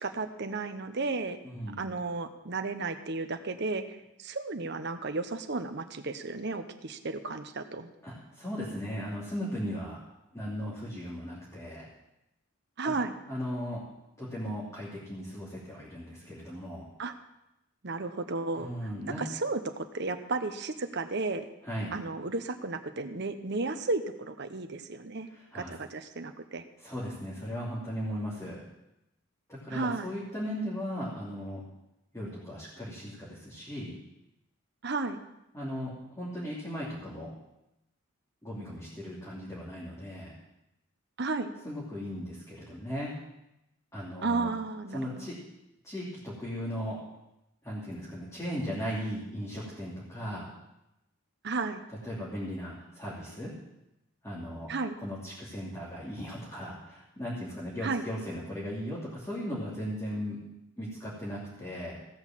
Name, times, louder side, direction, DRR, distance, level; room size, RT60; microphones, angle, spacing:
voice 1, 0.0-1.4 1.8-7.9 12.8-13.1 17.0-17.1 17.8-18.7 19.2-21.5 21.9-25.3 25.5-26.6 29.7-30.1 34.8-35.2 41.2-41.5 44.2-45.3 51.4-51.8 54.7-55.0 57.8-58.0, right 3 dB, 55° right, 8 dB, 1.0 m, -33 dB
voice 2, 1.4-1.8 8.0-10.0 10.3-11.9 12.8-13.0 13.3-13.8 14.2-16.8 18.5-19.2 21.6-21.9 25.3-25.7 26.8-28.6 29.5-31.6 32.1-33.9 35.5-37.3 38.4-40.3 41.6-43.1 43.9-44.5 44.9-45.4 45.8-47.0 47.6-50.5 52.0-53.5 54.2-54.7 55.0-60.4 60.8-62.0, equal, 15° left, -8 dB, 3.0 m, -37 dB
16.0 x 6.3 x 7.5 m, 0.90 s
head